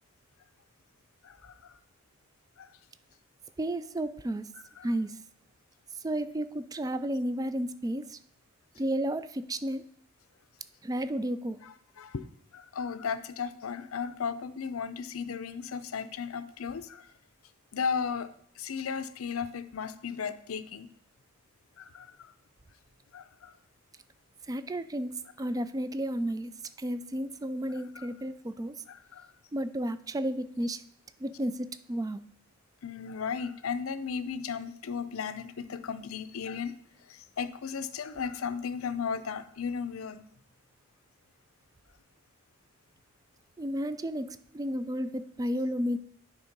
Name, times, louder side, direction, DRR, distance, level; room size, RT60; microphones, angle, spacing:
voice 1, 1.2-1.7 2.6-2.7 4.8-4.9 11.6-12.2 12.5-17.1 17.7-18.3 18.6-20.9 21.8-22.3 23.1-23.5 27.9-28.1 28.9-29.3 32.8-36.7 37.1-40.2, left 6 dB, 85° left, 12 dB, 0.5 m, -35 dB
voice 2, 3.6-4.4 4.8-5.1 6.0-8.2 8.8-9.8 10.8-11.6 24.5-25.1 25.4-26.5 26.8-28.7 29.5-30.8 31.2-32.2 43.6-44.3 44.5-46.0, right 1 dB, 15° right, 13 dB, 0.3 m, -32 dB
9.8 x 3.6 x 5.2 m, 0.68 s
head